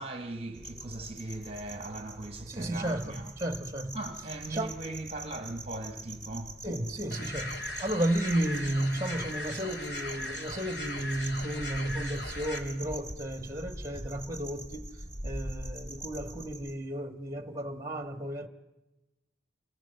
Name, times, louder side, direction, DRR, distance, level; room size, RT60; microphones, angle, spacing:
voice 1, 0.0-3.3 3.9-6.7, right 2 dB, 30° right, 1.1 m, -39 dB
sound 1, 0.5-16.7, right 1 dB, 5° left, 2.6 m, -43 dB
voice 2, 2.5-4.0 4.5-4.7 6.6-14.8 15.2-18.5, right 1 dB, 15° right, 1.4 m, -33 dB
sound 2, 7.1-12.6, left 1 dB, 60° left, 3.4 m, -39 dB
28.0 x 20.0 x 8.0 m
head